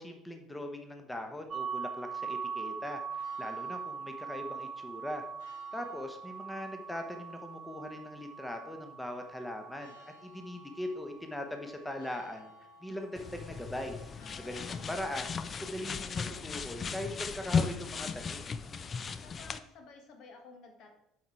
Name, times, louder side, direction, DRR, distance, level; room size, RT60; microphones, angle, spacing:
voice 1, 0.0-5.3 5.7-12.5 12.8-18.5, left 1 dB, 10° left, 5 dB, 1.0 m, -40 dB
sound 1, 1.5-13.2, right 6 dB, 35° right, 0.4 m, -42 dB
sound 2, 2.9-16.6, left 8 dB, 75° left, 1.2 m, -62 dB
sound 3, 13.2-19.6, left 6 dB, 35° left, 0.5 m, -36 dB
voice 2, 14.2-15.0 19.2-20.9, left 4 dB, 55° left, 4 dB, 1.3 m, -53 dB
7.8 x 4.8 x 4.4 m, 0.82 s
figure-of-eight pair, 60°, 0 cm